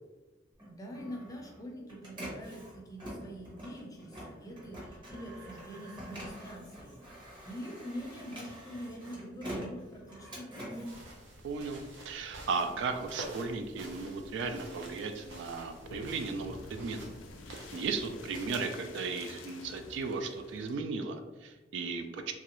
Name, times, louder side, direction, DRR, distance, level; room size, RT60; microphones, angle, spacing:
Printer, 0.5-12.0 12.4-14.3, equal, 25° right, 0.9 m, -46 dB
voice 1, 0.6-11.0, equal, 20° left, 0 dB, 0.5 m, -44 dB
sound 1, 10.9-18.7, right 1 dB, 90° right, 0.7 m, -48 dB
voice 2, 11.4-17.0 17.7-22.3, right 4 dB, 65° right, 6 dB, 0.3 m, -36 dB
sound 2, 14.9-20.8, left 3 dB, 80° left, 0.3 m, -50 dB
3.0 x 2.4 x 3.0 m, 1.1 s
head